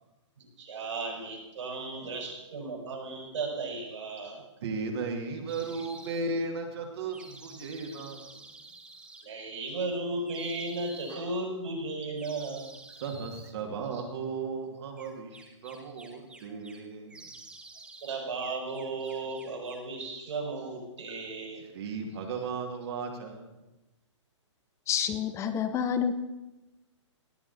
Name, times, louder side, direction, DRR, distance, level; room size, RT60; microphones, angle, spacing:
voice 1, 0.4-4.4 5.8-5.9 6.3-6.4 9.2-12.7 13.9-14.0 16.5-16.6 18.0-21.6, right 3 dB, 75° right, -1 dB, 5.7 m, -35 dB
voice 2, 4.6-8.3 13.0-17.3 21.7-23.6, right 4 dB, 55° right, 1 dB, 2.4 m, -35 dB
sound 1, 5.5-6.2 7.1-9.2 10.2-11.3 12.1-13.5 15.0-16.8 17.1-18.2 18.4-19.9, right 3 dB, 5° right, 1.1 m, -50 dB
voice 3, 24.9-26.1, left 8 dB, 20° left, 10 dB, 0.9 m, -28 dB
18.0 x 9.2 x 4.2 m, 1.0 s
hypercardioid pair, 135°, 16 cm